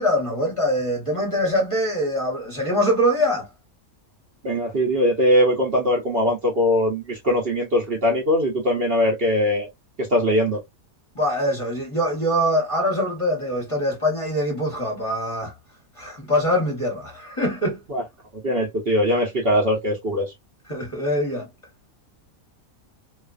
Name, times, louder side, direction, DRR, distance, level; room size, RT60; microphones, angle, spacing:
voice 1, 0.0-3.5 11.1-15.5 16.0-17.8 20.7-21.5, equal, 25° left, 0.9 m, -23 dB
voice 2, 4.4-9.7 10.0-10.6 17.9-18.0 18.3-20.3, left 1 dB, 50° right, 0.8 m, -21 dB
2.4 x 2.2 x 2.3 m
omnidirectional pair, 1.5 m